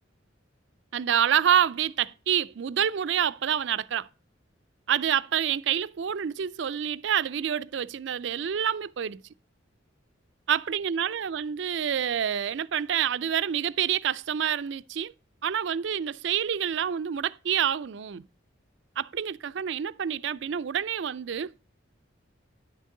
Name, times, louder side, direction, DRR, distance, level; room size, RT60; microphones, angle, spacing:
voice 1, 0.9-4.1 4.9-9.2 10.5-15.1 15.4-18.3 19.0-21.6, right 9 dB, 60° right, 0.4 m, -27 dB
10.5 x 6.5 x 3.8 m
head